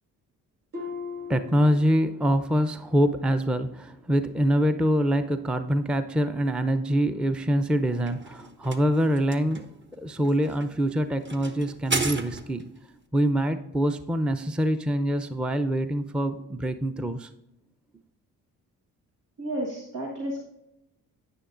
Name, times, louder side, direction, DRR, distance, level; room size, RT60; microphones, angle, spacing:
Harp, 0.7-2.5 2.9-3.3 3.8-3.9, left 5 dB, 55° right, 1.5 m, -40 dB
voice 1, 1.3-9.7 9.9-12.7 13.1-17.3, right 1 dB, 5° right, 10 dB, 0.5 m, -25 dB
sound 1, 7.7-12.8, right 3 dB, 30° right, 1.1 m, -35 dB
voice 2, 19.4-20.4, right 1 dB, 80° right, -2 dB, 1.5 m, -32 dB
10.0 x 9.3 x 2.5 m, 0.86 s
supercardioid pair, 50°, 39 cm